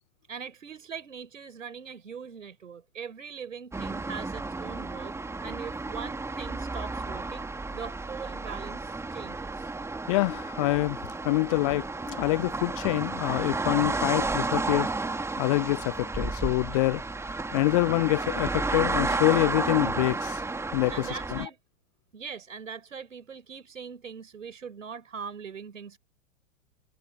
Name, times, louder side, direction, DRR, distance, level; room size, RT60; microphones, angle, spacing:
voice 1, 0.3-5.2 5.4-9.7 20.9-21.6 22.1-26.0, right 6 dB, 75° right, 4.9 m, -41 dB
sound 1, 3.7-21.5, right 3 dB, 5° right, 2.6 m, -32 dB
voice 2, 10.1-11.0 11.2-14.9 15.4-20.4 20.7-21.5, left 20 dB, 30° left, 0.4 m, -26 dB
figure-of-eight pair, 105°, 38 cm